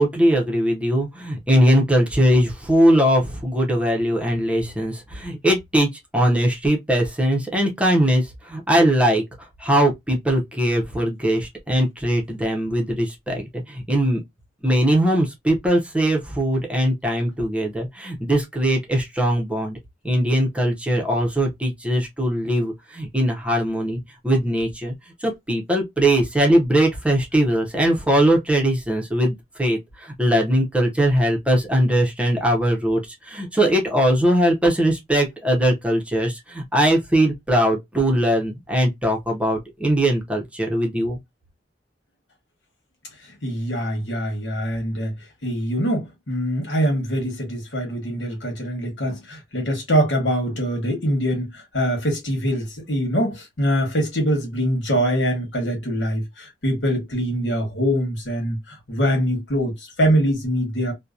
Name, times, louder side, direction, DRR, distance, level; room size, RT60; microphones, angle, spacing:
voice 1, 0.0-8.2 8.5-9.2 9.6-14.2 14.6-19.8 20.0-24.0 24.2-24.9 25.2-33.0 33.3-41.2, equal, 5° right, 0.7 m, -20 dB
voice 2, 43.4-45.1 45.4-60.9, equal, 75° left, 1.3 m, -23 dB
2.8 x 2.2 x 2.3 m
head